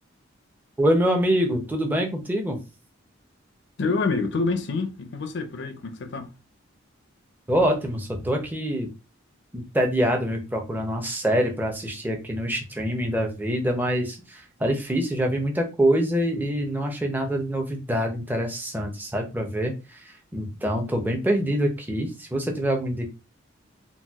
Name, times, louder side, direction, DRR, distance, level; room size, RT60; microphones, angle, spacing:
voice 1, 0.8-2.6 7.5-8.9 9.5-23.1, equal, 10° right, 0.5 m, -25 dB
voice 2, 3.8-6.3, left 3 dB, 55° left, 0.4 m, -27 dB
4.0 x 2.2 x 2.3 m
head